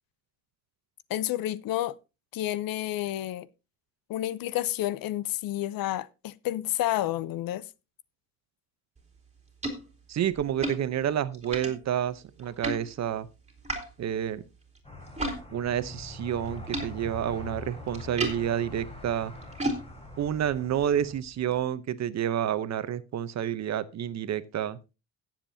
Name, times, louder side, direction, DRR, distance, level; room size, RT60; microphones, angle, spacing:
voice 1, 1.1-1.9 2.3-3.5 4.1-7.7, left 14 dB, 70° left, 0.7 m, -30 dB
sound 1, 9.0-15.4 15.7-21.6, right 1 dB, 20° right, 2.9 m, -38 dB
voice 2, 10.1-13.3 14.0-14.4 15.5-19.3 20.2-24.8, right 10 dB, 50° right, 0.8 m, -29 dB
sound 2, 14.8-21.1, left 1 dB, 15° left, 4.0 m, -43 dB
17.5 x 7.5 x 2.7 m
cardioid pair, 130°, 36 cm